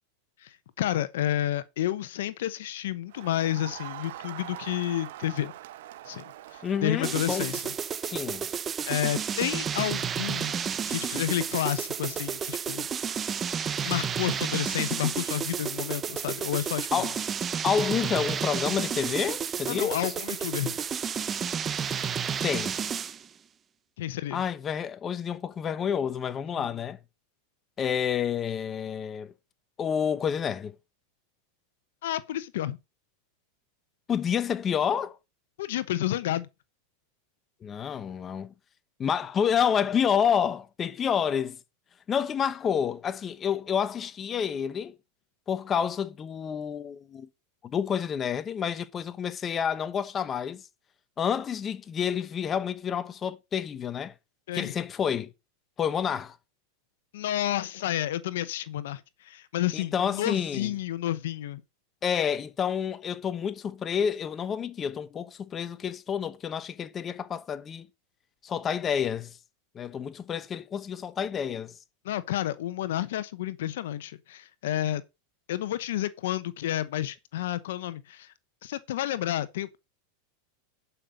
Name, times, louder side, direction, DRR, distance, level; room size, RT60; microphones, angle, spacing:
voice 1, 0.4-5.5 6.0-6.2 6.5-7.7 8.9-10.5 10.9-13.2 13.8-17.1 19.7-20.8 24.0-24.4 26.5-26.7 32.0-32.8 35.6-36.5 54.5-54.7 57.1-61.6 72.0-75.0 75.5-78.3 78.6-79.8, left 12 dB, 75° left, 0.8 m, -30 dB
Crowd, 3.1-7.9, right 14 dB, 75° right, 0.9 m, -44 dB
voice 2, 6.6-7.5 8.0-8.4 16.9-17.2 17.6-20.1 22.4-22.7 24.3-27.0 27.8-29.3 29.8-30.7 34.1-35.2 37.6-38.5 39.0-41.6 42.1-44.9 45.5-47.3 47.6-50.6 51.2-54.1 54.5-55.3 55.8-56.4 59.7-60.7 62.0-67.9 68.4-69.4 69.7-71.7, left 8 dB, 25° left, 0.9 m, -29 dB
sound 1, 7.0-23.2, right 7 dB, 25° right, 0.8 m, -31 dB
11.5 x 5.6 x 5.0 m
supercardioid pair, 130°, 0 cm